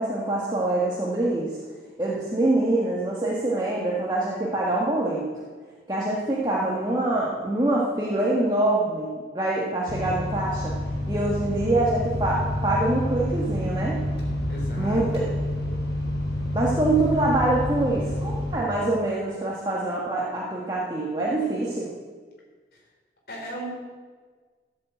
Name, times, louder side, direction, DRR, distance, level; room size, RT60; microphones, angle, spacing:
voice 1, 0.0-1.6 2.0-5.3 5.9-10.8 11.1-14.0 14.8-15.0 16.5-21.9, right 2 dB, 25° right, -5 dB, 1.6 m, -25 dB
sound 1, 9.9-18.6, left 1 dB, 80° left, 4.5 m, -28 dB
voice 2, 14.5-15.2 22.7-22.8 23.3-23.7, right 1 dB, 60° left, -2 dB, 4.0 m, -35 dB
14.0 x 7.7 x 8.0 m, 1.5 s
head